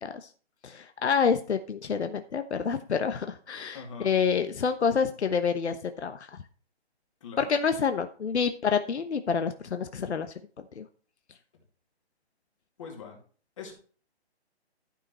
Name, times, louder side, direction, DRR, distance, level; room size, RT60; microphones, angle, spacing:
voice 1, 0.6-6.3 7.4-10.3 10.8-10.9, left 6 dB, 80° left, 8 dB, 1.1 m, -28 dB
voice 2, 3.7-4.2 7.2-7.6 12.8-13.2 13.6-13.7, left 5 dB, 30° left, 1 dB, 2.4 m, -42 dB
12.5 x 5.8 x 4.3 m, 0.41 s
hypercardioid pair, 175°, 33 cm